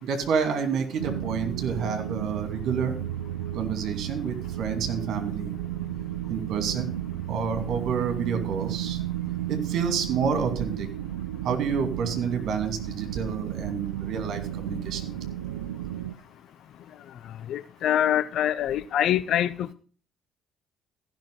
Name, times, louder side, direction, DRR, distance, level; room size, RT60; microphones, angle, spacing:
voice 1, 0.0-3.0 3.5-5.5 6.3-6.9 7.3-9.0 9.5-10.9 11.4-15.1, right 6 dB, 55° right, 2.5 m, -29 dB
sound 1, 1.0-16.1, right 12 dB, 80° right, 0.5 m, -33 dB
voice 2, 17.5-19.7, left 11 dB, 60° left, 0.6 m, -25 dB
15.0 x 6.1 x 6.5 m
figure-of-eight pair, 50°, 0 cm